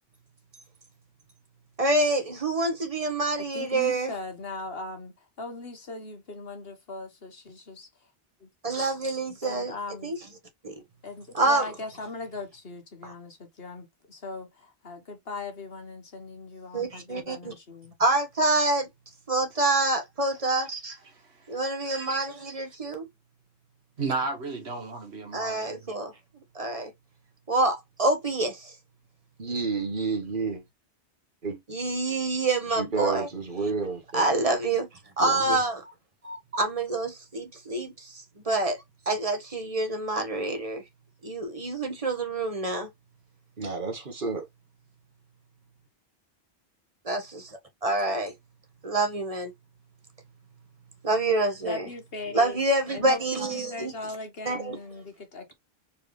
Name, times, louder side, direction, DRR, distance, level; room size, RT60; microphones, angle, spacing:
voice 1, 1.8-4.1 8.6-9.7 10.0-10.2 10.6-10.7 11.3-11.7 13.0-13.1 16.7-17.5 18.0-18.9 19.3-20.7 21.5-22.2 22.5-23.1 25.3-26.1 26.5-26.9 27.5-28.7 31.7-33.3 34.1-34.9 35.2-35.8 36.2-40.8 41.2-42.9 47.0-48.3 48.8-49.5 51.0-51.9 52.3-53.9 54.4-54.8, right 2 dB, 35° right, 1.4 m, -27 dB
voice 2, 3.5-7.9 8.4-8.5 9.4-10.2 11.0-17.9 51.6-52.6 52.9-55.5, left 3 dB, 65° left, 1.6 m, -39 dB
voice 3, 20.5-21.2 21.8-22.3 24.0-25.8, right 4 dB, 75° right, 1.8 m, -34 dB
voice 4, 29.4-30.6 31.4-31.6 32.7-34.3 35.2-35.6 43.6-44.5, right 4 dB, 50° right, 1.5 m, -30 dB
4.6 x 3.4 x 3.1 m
omnidirectional pair, 1.1 m